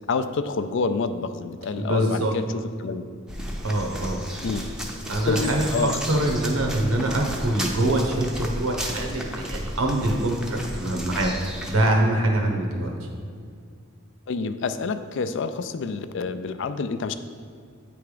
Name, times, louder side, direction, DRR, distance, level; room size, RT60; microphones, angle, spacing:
voice 1, 0.1-2.4 2.8-3.0 4.4-4.6 5.3-6.0 14.3-17.1, left 4 dB, 60° left, 10 dB, 0.4 m, -27 dB
voice 2, 1.8-2.3 3.6-4.2 5.1-11.4 11.7-12.9, right 1 dB, 90° right, 1 dB, 1.1 m, -24 dB
sound 1, 3.3-11.8, equal, 5° right, 0.5 m, -33 dB
8.6 x 3.5 x 5.0 m, 2.2 s
head